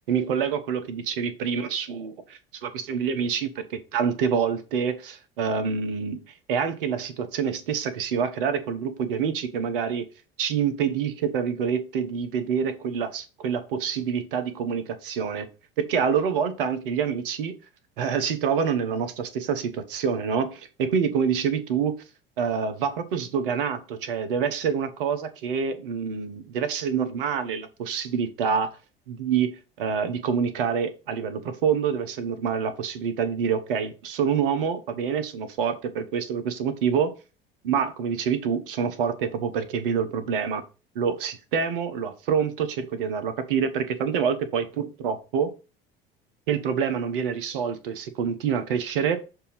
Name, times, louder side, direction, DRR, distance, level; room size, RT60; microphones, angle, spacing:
voice 1, 0.1-6.2 6.5-10.1 10.4-15.5 15.8-17.6 18.0-22.0 22.4-28.8 29.1-37.1 37.6-40.6 40.9-45.5 46.5-49.2, right 7 dB, 65° right, 0.9 m, -26 dB
6.8 x 2.7 x 5.4 m
figure-of-eight pair, 70°, 29 cm